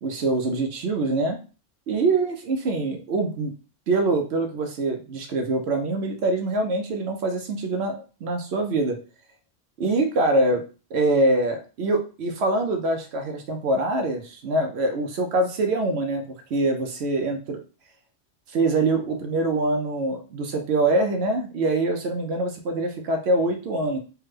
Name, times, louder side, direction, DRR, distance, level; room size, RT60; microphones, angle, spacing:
voice 1, 0.0-1.4 1.9-3.5 3.9-9.0 9.8-10.6 10.9-16.2 16.5-17.6 18.5-24.0, right 2 dB, 65° right, 5 dB, 0.8 m, -24 dB
3.4 x 2.1 x 3.1 m, 0.35 s
omnidirectional pair, 1.2 m